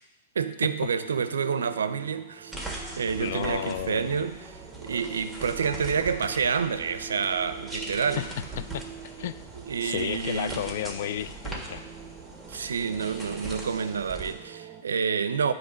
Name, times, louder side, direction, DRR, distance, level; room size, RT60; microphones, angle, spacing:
voice 1, 0.4-2.5 3.0-8.2 9.7-10.7 12.5-15.5, right 6 dB, 85° right, 12 dB, 0.4 m, -28 dB
sound 1, 0.8-14.8, right 10 dB, 30° right, 0.6 m, -46 dB
sound 2, 2.5-14.3, right 2 dB, 5° left, 1.5 m, -41 dB
voice 2, 3.2-4.2 8.2-8.3 8.6-8.8 9.2-9.4 9.8-11.8, left 11 dB, 60° left, 14 dB, 0.3 m, -32 dB
9.6 x 3.3 x 5.1 m, 1.0 s
hypercardioid pair, 115°, 0 cm